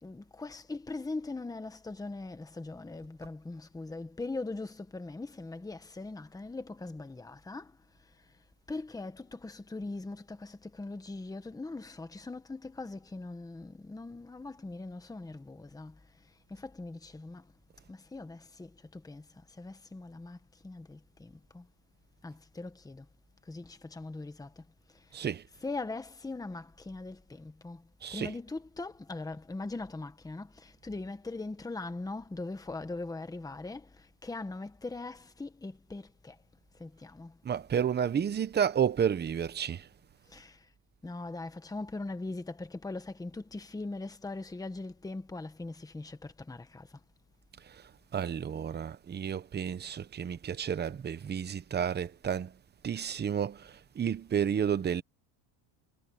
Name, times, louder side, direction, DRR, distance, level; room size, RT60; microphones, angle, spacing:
voice 1, 0.0-7.7 8.7-16.0 16.5-17.4 17.9-19.2 19.6-20.4 20.6-21.7 22.2-23.0 23.5-24.6 25.6-27.8 28.1-36.4 36.8-37.3 40.3-40.6 41.0-46.9, left 3 dB, 5° left, 1.3 m, -41 dB
voice 2, 25.1-25.4 28.0-28.3 37.4-39.9 47.7-47.8 48.1-52.5 52.8-55.0, right 8 dB, 20° right, 0.8 m, -31 dB
cardioid pair, 150°, 49 cm